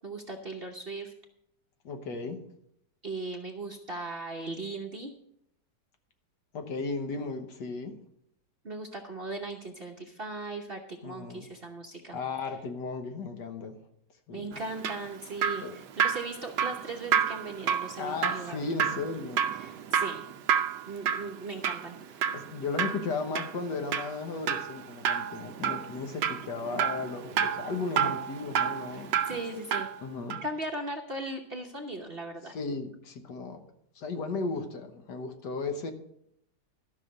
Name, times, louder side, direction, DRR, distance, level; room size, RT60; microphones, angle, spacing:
voice 1, 0.0-1.1 3.0-5.1 8.6-12.2 14.3-18.6 19.5-20.2 20.9-22.4 28.9-29.9 30.4-32.5, right 2 dB, 40° right, 2 dB, 0.9 m, -38 dB
voice 2, 1.8-2.4 6.5-7.9 11.0-11.5 12.1-13.8 14.3-14.6 15.6-15.8 18.0-19.4 22.3-29.4 30.0-30.4 32.4-33.6 33.9-35.9, left 4 dB, 70° left, 6 dB, 1.8 m, -35 dB
Drip, 14.5-30.0 30.3-30.4, right 8 dB, 85° right, 1.4 m, -30 dB
13.0 x 6.0 x 6.5 m, 0.74 s
omnidirectional pair, 2.0 m